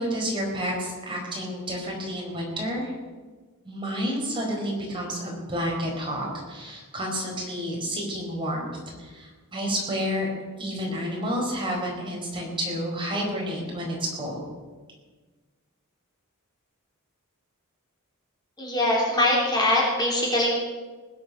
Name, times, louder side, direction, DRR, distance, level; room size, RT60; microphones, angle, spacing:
voice 1, 0.0-2.9 3.6-8.7 9.0-10.3 10.6-14.4, equal, 20° right, -2 dB, 4.5 m, -30 dB
voice 2, 18.6-20.5, left 1 dB, 20° left, -4 dB, 3.4 m, -22 dB
20.0 x 10.5 x 5.7 m, 1.4 s
head